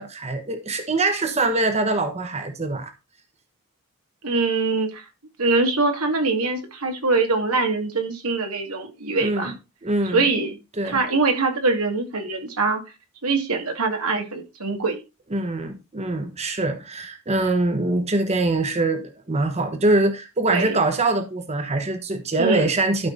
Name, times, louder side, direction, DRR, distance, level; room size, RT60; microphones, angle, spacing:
voice 1, 0.0-2.9 9.2-9.5 9.8-10.2 10.8-11.0 15.3-23.1, right 2 dB, 30° right, 1.1 m, -23 dB
voice 2, 4.2-5.0 5.4-9.5 10.1-10.6 10.8-12.8 13.2-15.0 20.5-20.8 22.4-22.7, right 3 dB, 85° right, 2.3 m, -23 dB
12.5 x 5.3 x 3.9 m
head